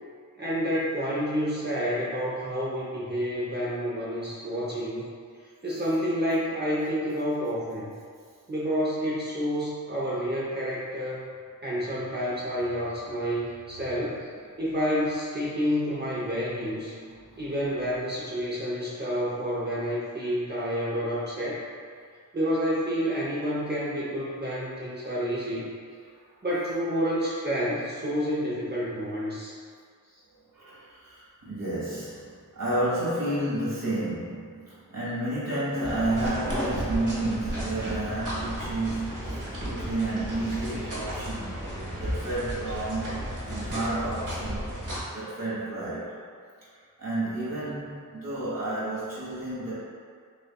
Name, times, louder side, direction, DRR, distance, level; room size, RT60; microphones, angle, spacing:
voice 1, 0.4-5.1 5.6-7.9 8.5-11.2 11.6-14.2 14.6-17.0 17.4-21.7 22.3-25.7 26.4-29.6, equal, 30° right, -8 dB, 0.8 m, -29 dB
voice 2, 16.4-17.4 26.0-26.1 30.1-41.6 41.9-44.7 45.1-46.2 46.6-46.7 47.0-49.7, right 2 dB, 85° right, -9 dB, 1.5 m, -31 dB
sound 1, 35.8-45.0, equal, 65° right, 1.2 m, -33 dB
6.4 x 2.5 x 2.3 m, 2.1 s
wide cardioid pair, 95°, 33 cm